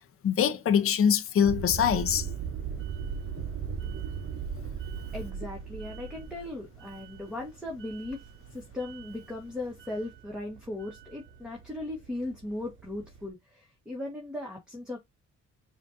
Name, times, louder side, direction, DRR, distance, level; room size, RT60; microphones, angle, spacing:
voice 1, 0.2-2.3, left 8 dB, 45° left, 0.7 m, -24 dB
sound 1, 1.4-13.3, right 7 dB, 40° right, 0.8 m, -39 dB
voice 2, 5.1-8.2 8.5-15.0, left 2 dB, 5° right, 1.4 m, -38 dB
5.0 x 2.5 x 2.7 m
cardioid pair, 90°, 30 cm